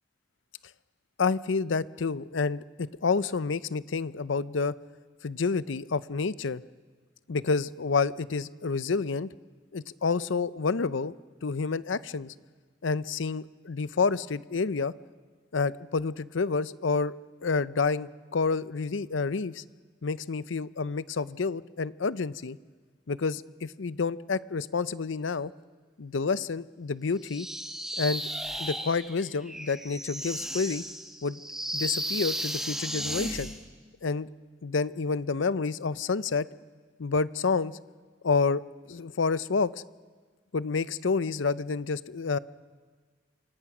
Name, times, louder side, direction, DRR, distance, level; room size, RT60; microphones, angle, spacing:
voice 1, 1.2-4.7 5.2-6.6 7.3-9.3 9.7-11.2 11.4-12.3 12.8-14.9 15.5-17.1 17.4-19.6 20.0-22.6 23.1-25.5 26.0-27.5 28.0-28.2 28.6-30.8 31.2-31.4 31.7-33.5 34.0-34.3 34.6-36.5 37.0-37.8 38.2-39.7 40.5-42.4, left 4 dB, 70° left, 16 dB, 0.6 m, -29 dB
sound 1, 27.3-33.6, right 1 dB, 5° right, 1.8 m, -34 dB
27.5 x 26.5 x 6.1 m, 1.5 s
head